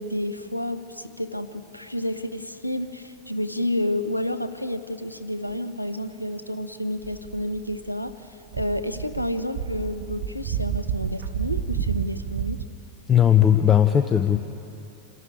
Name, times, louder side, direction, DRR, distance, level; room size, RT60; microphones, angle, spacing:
voice 1, 0.0-8.2 8.5-12.6, left 1 dB, 90° left, 10 dB, 0.9 m, -30 dB
sound 1, 7.0-8.1 8.5-12.6, right 8 dB, 50° right, 1.0 m, -30 dB
voice 2, 13.1-14.4, left 9 dB, 20° left, 8 dB, 0.7 m, -17 dB
27.0 x 12.5 x 9.0 m, 2.8 s
figure-of-eight pair, 90°, 0 cm